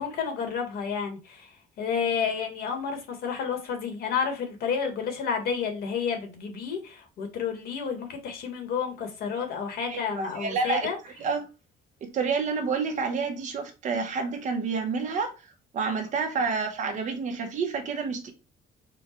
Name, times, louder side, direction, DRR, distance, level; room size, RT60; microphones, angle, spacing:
voice 1, 0.0-1.5 1.8-11.0 16.4-16.5, left 6 dB, 70° left, 1.4 m, -30 dB
voice 2, 9.9-10.9 11.2-11.5 12.0-15.3 15.7-18.3, right 4 dB, 50° right, 1.0 m, -29 dB
4.4 x 2.3 x 4.3 m
cardioid pair, 155°, 17 cm